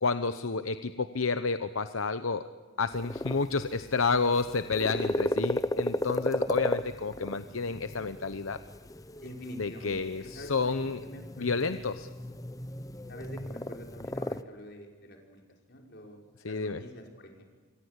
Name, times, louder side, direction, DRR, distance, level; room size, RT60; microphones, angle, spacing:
voice 1, 0.0-2.4 2.8-8.6 9.6-11.0 11.4-12.1 16.4-16.8, left 4 dB, 75° left, 10 dB, 0.9 m, -30 dB
sound 1, 2.9-14.4, left 1 dB, 15° left, 0.7 m, -35 dB
voice 2, 9.2-11.7 13.1-15.4 15.7-17.4, equal, 50° left, 1 dB, 5.4 m, -46 dB
27.5 x 24.0 x 8.3 m, 1.5 s
head